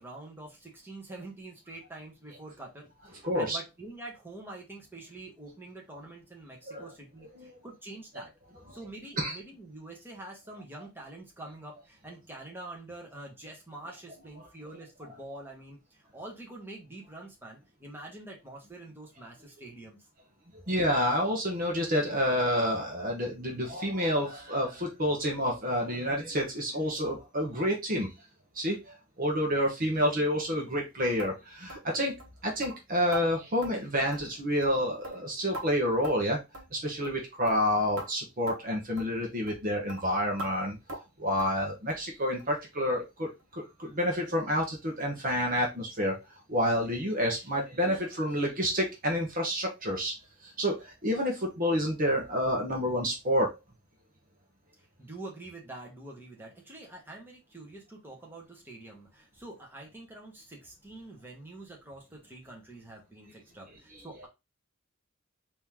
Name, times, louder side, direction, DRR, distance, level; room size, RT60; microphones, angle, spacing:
voice 1, 0.0-8.3 8.7-20.0 54.8-64.3, right 2 dB, 10° right, -2 dB, 1.4 m, -46 dB
voice 2, 3.2-3.6 6.7-6.8 7.4-7.5 9.2-9.3 20.7-28.1 28.5-32.1 32.4-36.4 36.7-40.8 41.2-43.3 43.6-46.2 46.5-50.1 50.4-53.6, equal, 40° right, 0 dB, 1.1 m, -29 dB
sound 1, 31.2-31.3 31.7-31.9 32.2-32.3 32.6-32.8 33.1-33.3 33.6-33.8 34.1-34.4 34.6-34.8 35.0-35.7 36.0-36.3 36.5-36.7 37.0-37.2 37.5-37.6 38.0-38.1 38.5-38.6 39.0-39.1 39.5-39.6 39.9-40.0 40.4-40.5 40.9-41.1 41.4-41.6 41.9-42.1 42.4-42.5 42.9-43.0 43.4-43.5, right 1 dB, 70° right, 1.3 m, -40 dB
4.2 x 3.0 x 3.6 m, 0.24 s
head